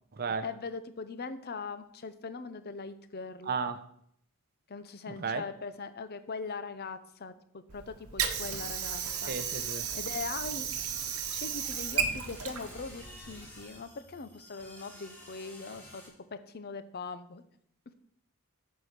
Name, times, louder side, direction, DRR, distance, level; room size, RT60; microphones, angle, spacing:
voice 1, 0.4-3.6 4.7-9.3 9.9-10.7 11.0-16.0 16.3-17.4, left 4 dB, 45° left, 11 dB, 0.7 m, -41 dB
voice 2, 3.5-3.8 5.2-5.4 9.3-9.9, right 5 dB, 45° right, 11 dB, 0.7 m, -33 dB
Water / Sink (filling or washing), 7.7-13.7, right 7 dB, 75° right, 1.0 m, -34 dB
sound 1, 8.4-16.1, left 1 dB, 10° left, 2.1 m, -51 dB
9.7 x 4.6 x 6.6 m, 0.68 s
head